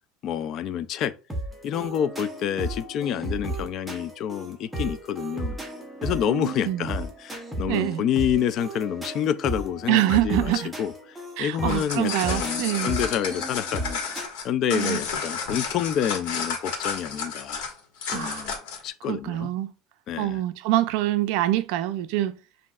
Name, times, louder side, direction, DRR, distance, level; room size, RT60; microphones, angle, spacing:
voice 1, 0.2-1.1 1.6-5.6 6.0-10.5 10.8-10.9 11.4-14.0 14.4-17.7 18.1-18.5 18.8-19.5 20.1-20.4, left 9 dB, 40° left, 0.3 m, -28 dB
sound 1, 1.3-14.2, right 1 dB, 5° right, 0.7 m, -34 dB
voice 2, 6.3-6.9 7.7-8.0 9.9-10.7 11.4-13.0 14.7-15.0 18.1-18.5 19.1-19.7 20.2-22.4, right 14 dB, 65° right, 0.4 m, -25 dB
sound 2, 11.5-18.9, left 5 dB, 80° left, 1.4 m, -31 dB
7.3 x 2.6 x 2.3 m
cardioid pair, 150°, 0 cm